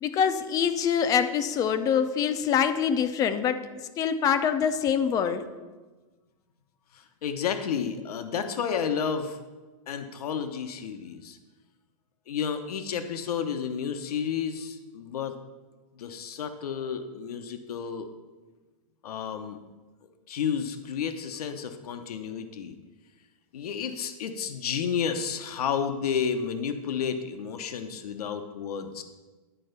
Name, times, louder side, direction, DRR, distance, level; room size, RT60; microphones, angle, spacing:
voice 1, 0.0-3.6 4.0-5.4, left 7 dB, 20° left, 10 dB, 0.4 m, -25 dB
voice 2, 6.9-9.4 9.9-11.4 12.3-15.3 16.0-18.1 19.0-19.6 20.3-22.7 23.5-29.0, left 7 dB, 90° left, 7 dB, 0.9 m, -31 dB
10.0 x 4.3 x 6.6 m, 1.3 s
supercardioid pair, 155°, 19 cm